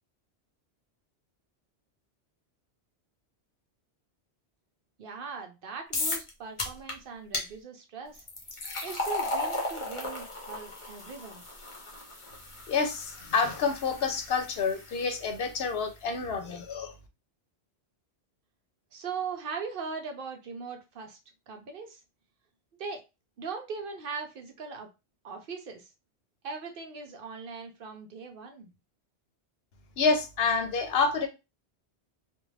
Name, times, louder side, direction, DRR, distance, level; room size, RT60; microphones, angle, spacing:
voice 1, 5.0-8.3 8.8-11.4 18.9-21.2 21.5-22.0 22.8-23.0 23.4-24.9 25.2-25.9 26.4-28.7, right 5 dB, 60° right, 0.7 m, -39 dB
sound 1, 5.9-6.3 6.6-6.9 7.3-7.5 8.1-15.3, left 2 dB, 35° left, 0.6 m, -36 dB
voice 2, 12.7-16.9 30.0-31.3, left 5 dB, 70° left, 0.8 m, -28 dB
2.4 x 2.2 x 3.2 m
omnidirectional pair, 1.1 m